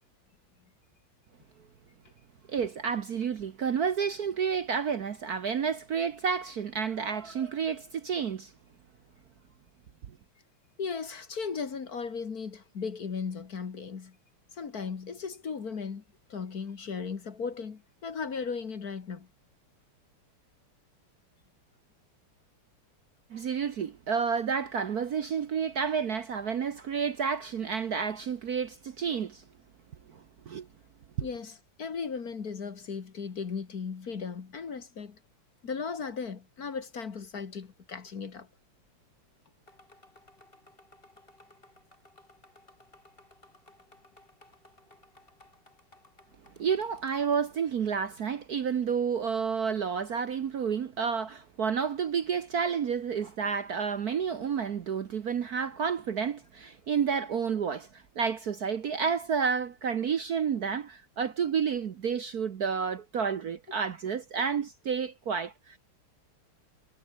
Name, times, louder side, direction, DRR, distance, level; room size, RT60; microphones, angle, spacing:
voice 1, 2.5-8.5 23.3-29.4 30.1-30.7 31.2-31.3 46.6-65.8, right 6 dB, 55° right, 1.3 m, -30 dB
voice 2, 10.8-14.2 14.5-16.0 16.3-19.3 31.2-35.2 35.6-38.5, left 5 dB, 45° left, 2.0 m, -36 dB
sound 1, 39.7-47.6, left 1 dB, 25° left, 5.5 m, -59 dB
omnidirectional pair, 2.4 m